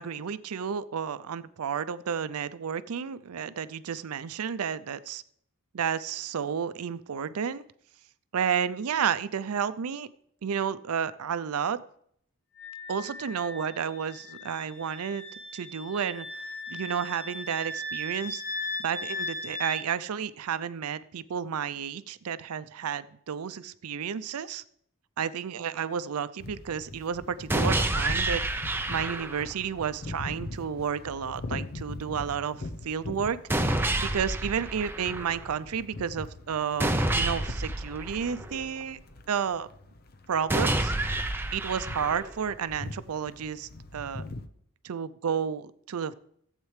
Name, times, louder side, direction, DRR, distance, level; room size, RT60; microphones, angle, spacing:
voice 1, 0.0-5.2 5.7-7.6 8.3-10.1 10.4-11.8 12.9-15.2 15.5-16.3 16.7-18.4 18.8-24.6 25.2-28.4 28.9-33.6 34.0-39.0 39.3-39.7 40.3-40.9 41.5-44.2 44.8-46.1, right 7 dB, 80° right, 15 dB, 0.5 m, -31 dB
Wind instrument woodwind instrument, 12.6-19.8, left 2 dB, 75° left, 3.8 m, -38 dB
sound 1, 26.4-44.5, left 2 dB, 45° left, 0.7 m, -42 dB
sound 2, 27.5-29.5 33.5-35.5 36.8-38.8 40.5-42.5, right 1 dB, 10° right, 0.5 m, -29 dB
15.0 x 8.2 x 3.3 m, 0.67 s
head